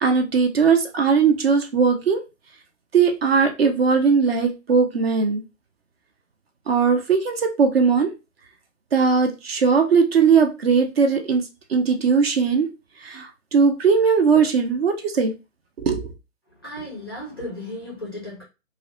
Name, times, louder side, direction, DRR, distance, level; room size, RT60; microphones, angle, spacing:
voice 1, 0.0-2.2 2.9-5.4 6.7-8.1 8.9-12.7 13.0-15.3 15.8-16.1, right 5 dB, 50° right, 0.5 m, -19 dB
voice 2, 16.6-18.4, left 1 dB, 20° left, 0.4 m, -34 dB
2.7 x 2.1 x 2.5 m
figure-of-eight pair, 130°, 40 cm